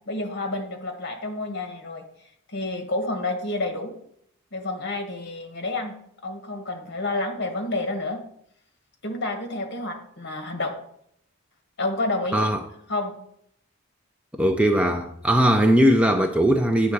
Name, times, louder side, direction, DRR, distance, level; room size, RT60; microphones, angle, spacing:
voice 1, 0.1-2.0 2.5-3.9 4.5-5.9 6.2-8.2 9.0-10.7 11.8-12.5 12.9-13.1, left 2 dB, 50° left, 1.3 m, -29 dB
voice 2, 14.4-16.9, equal, 5° right, 0.4 m, -19 dB
9.5 x 3.4 x 6.5 m
head